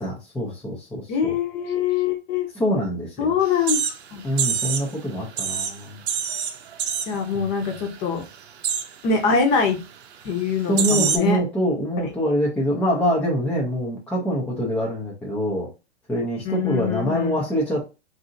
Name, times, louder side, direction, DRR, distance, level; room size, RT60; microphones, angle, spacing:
voice 1, 0.0-1.3 2.6-3.3 4.2-6.0 7.3-7.5 10.7-15.7 16.1-17.9, equal, 5° left, -5 dB, 0.4 m, -25 dB
voice 2, 1.1-2.5 3.2-3.8 4.1-4.2 7.1-8.2 9.0-9.8 10.2-11.4 12.0-12.1 16.4-17.4, left 6 dB, 30° left, 4 dB, 0.8 m, -23 dB
sound 1, 3.4-5.0 5.2-7.3 7.6-8.0 8.2-8.9 9.6-9.8 10.3-10.4 10.8-11.2, right 7 dB, 65° right, 0.6 m, -26 dB
2.7 x 2.6 x 2.5 m, 0.28 s
hypercardioid pair, 125°, 35 cm